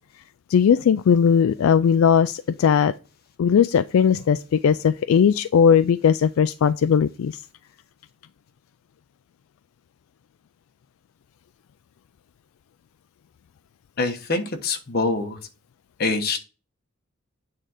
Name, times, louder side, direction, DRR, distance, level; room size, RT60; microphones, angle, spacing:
voice 1, 0.5-2.9 3.4-7.4, left 7 dB, 75° left, 0.3 m, -18 dB
voice 2, 14.0-15.4 16.0-16.4, left 3 dB, 45° left, 1.2 m, -24 dB
8.7 x 3.8 x 4.9 m
head